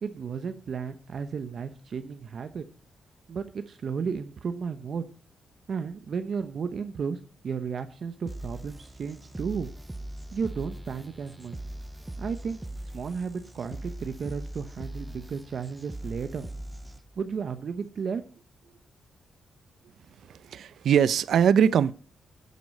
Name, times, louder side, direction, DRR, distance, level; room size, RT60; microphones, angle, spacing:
voice 1, 0.0-2.6 3.3-5.1 5.7-7.2 7.4-9.7 10.3-11.6 12.2-12.6 12.9-16.5 17.2-18.2, right 6 dB, 55° right, 0.9 m, -33 dB
sound 1, 8.2-17.2, right 1 dB, 10° right, 0.6 m, -40 dB
voice 2, 20.3-21.9, right 8 dB, 80° right, 0.5 m, -22 dB
11.0 x 8.2 x 5.3 m
cardioid pair, 105°, 0 cm